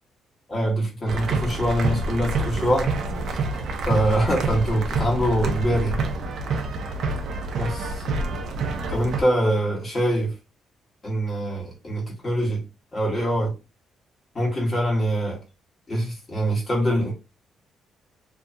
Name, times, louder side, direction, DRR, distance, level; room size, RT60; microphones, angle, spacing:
voice 1, 0.5-2.9 3.8-6.0 7.5-8.0 8.9-10.3 11.0-12.6 12.9-13.5 14.3-15.4 15.9-17.1, right 1 dB, 25° left, 1.3 m, -24 dB
sound 1, 1.1-9.2, right 3 dB, 60° right, 0.6 m, -27 dB
2.7 x 2.3 x 2.5 m
cardioid pair, 135°, 0 cm